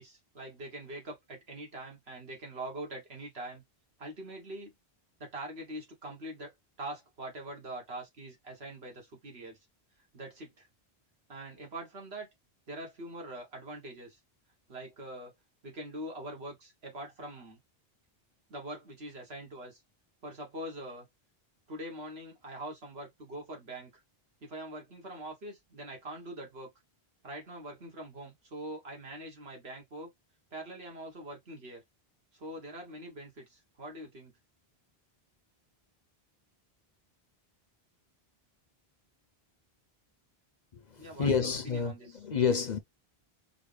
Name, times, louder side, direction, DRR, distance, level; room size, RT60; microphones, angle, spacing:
voice 1, 0.0-3.6 4.0-4.7 5.2-9.6 10.1-10.7 11.3-12.3 12.7-14.2 14.7-15.3 15.6-17.6 18.5-19.8 20.2-21.1 21.7-24.0 24.4-26.7 27.2-30.1 30.5-31.8 32.3-34.3 41.0-41.3 41.6-42.2, right 1 dB, 75° right, 1.9 m, -43 dB
voice 2, 40.7-42.8, left 6 dB, 50° left, 0.7 m, -29 dB
4.9 x 2.3 x 3.3 m
omnidirectional pair, 1.1 m